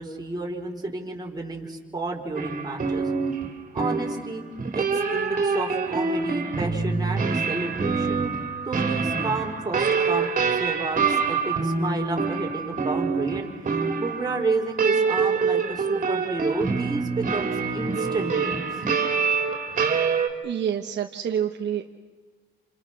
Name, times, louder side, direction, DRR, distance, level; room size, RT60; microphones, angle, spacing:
voice 1, 0.0-3.1 3.7-4.4 4.7-8.2 8.7-13.5 14.0-18.7, right 3 dB, 20° right, 0 dB, 4.7 m, -31 dB
sound 1, 2.4-20.3, right 5 dB, 40° right, 3.8 m, -25 dB
voice 2, 20.4-22.0, right 9 dB, 60° right, 4 dB, 1.3 m, -28 dB
29.0 x 27.0 x 6.3 m, 1.5 s
cardioid pair, 90°, 20 cm